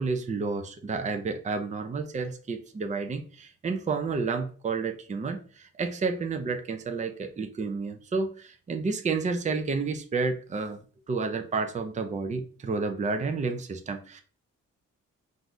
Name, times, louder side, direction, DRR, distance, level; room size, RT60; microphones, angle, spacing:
voice 1, 0.0-10.8 11.1-14.2, right 4 dB, 25° right, 7 dB, 0.5 m, -30 dB
3.8 x 2.6 x 4.5 m, 0.41 s
cardioid pair, 110°, 29 cm